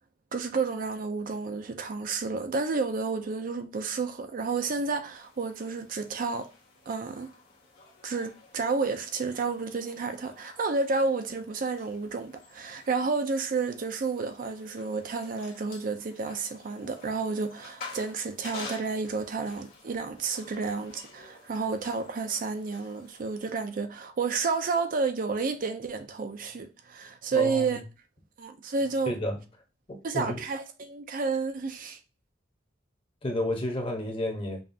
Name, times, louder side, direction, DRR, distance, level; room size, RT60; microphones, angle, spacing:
voice 1, 0.3-6.5 6.9-7.3 8.0-27.8 28.4-29.2 30.0-32.0, right 4 dB, 45° right, 0.4 m, -31 dB
sound 1, 5.2-23.5, left 4 dB, 55° left, 1.3 m, -50 dB
voice 2, 27.3-27.8 29.1-29.4 29.9-30.4 33.2-34.6, left 1 dB, 30° left, 0.9 m, -31 dB
5.4 x 2.4 x 2.7 m
head